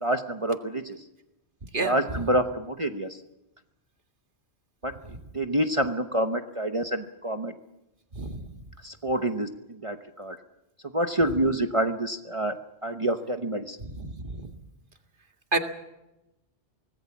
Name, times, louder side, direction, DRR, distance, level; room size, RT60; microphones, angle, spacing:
voice 1, 0.0-1.0 1.8-3.2 4.8-4.9 5.3-7.5 8.8-10.4 10.9-12.5 12.8-13.8, right 1 dB, 30° right, 6 dB, 1.0 m, -27 dB
voice 2, 1.7-2.2 8.1-8.4 13.8-14.5 15.5-15.6, right 2 dB, 45° right, 5 dB, 2.1 m, -30 dB
25.5 x 19.0 x 7.2 m, 0.96 s
omnidirectional pair, 1.2 m